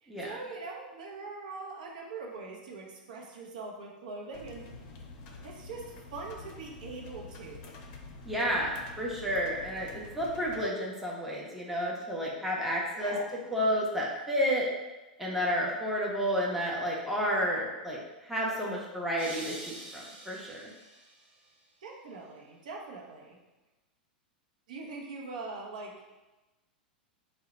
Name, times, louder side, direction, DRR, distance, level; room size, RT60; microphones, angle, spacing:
voice 1, 0.0-4.7 5.4-7.7 12.9-13.4 21.8-23.4 24.7-26.0, right 3 dB, 60° right, 0 dB, 0.7 m, -42 dB
sound 1, 4.3-10.6, left 3 dB, 45° left, 0.6 m, -47 dB
voice 2, 8.2-13.1 13.5-14.7 15.2-20.7, equal, 5° right, -4 dB, 0.6 m, -31 dB
sound 2, 19.2-21.3, right 2 dB, 35° right, 0.9 m, -45 dB
3.7 x 2.1 x 4.0 m, 1.1 s
figure-of-eight pair, 95°, 5 cm